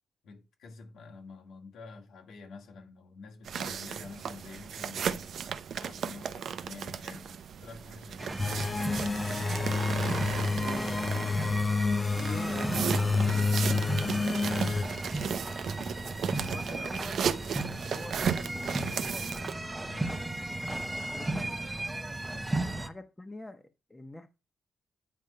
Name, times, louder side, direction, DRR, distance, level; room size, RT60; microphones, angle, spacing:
voice 1, 0.2-5.3 5.8-8.3 14.7-15.1 19.8-20.2 22.3-22.6, left 4 dB, 85° left, 2.1 m, -48 dB
sound 1, 3.4-11.6 12.1-19.5, right 7 dB, 65° right, 0.7 m, -35 dB
sound 2, 8.2-22.9, right 2 dB, 15° right, 0.9 m, -36 dB
sound 3, 8.4-14.8, left 4 dB, 30° left, 0.6 m, -29 dB
voice 2, 10.0-11.5 12.1-13.7 14.0-14.4 16.2-17.3 17.7-19.5 20.4-21.6 22.7-24.3, left 1 dB, 15° left, 1.1 m, -46 dB
9.3 x 3.7 x 5.6 m
cardioid pair, 115°, 0 cm